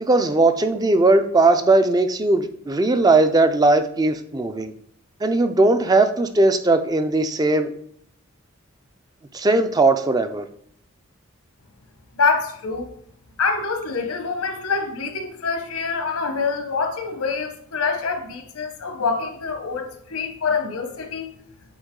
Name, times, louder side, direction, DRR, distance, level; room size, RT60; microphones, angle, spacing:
voice 1, 0.0-4.7 5.2-7.7 9.3-10.5, right 2 dB, 15° right, 0.3 m, -18 dB
voice 2, 12.2-12.8 13.4-21.3, left 4 dB, 85° left, 1.0 m, -25 dB
8.0 x 3.9 x 3.7 m
head